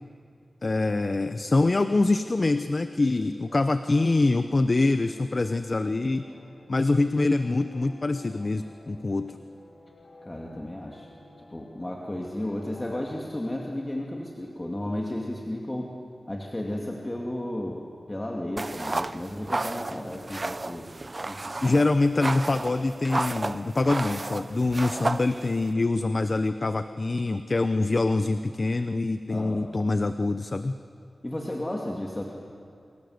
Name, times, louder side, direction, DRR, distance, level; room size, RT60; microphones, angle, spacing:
voice 1, 0.6-6.2 6.7-9.3 21.6-30.7, left 2 dB, 40° left, 10 dB, 0.8 m, -25 dB
sound 1, 3.5-16.2, left 1 dB, 80° left, 4.1 m, -52 dB
voice 2, 10.2-11.1 11.5-15.9 16.3-17.8 18.1-20.9 21.3-21.8 29.3-29.7 31.2-32.2, left 1 dB, 20° left, -1 dB, 2.5 m, -33 dB
sound 2, 18.6-25.7, right 2 dB, 35° right, 0.7 m, -33 dB
28.5 x 24.5 x 8.0 m, 2.5 s
wide cardioid pair, 90°, 0 cm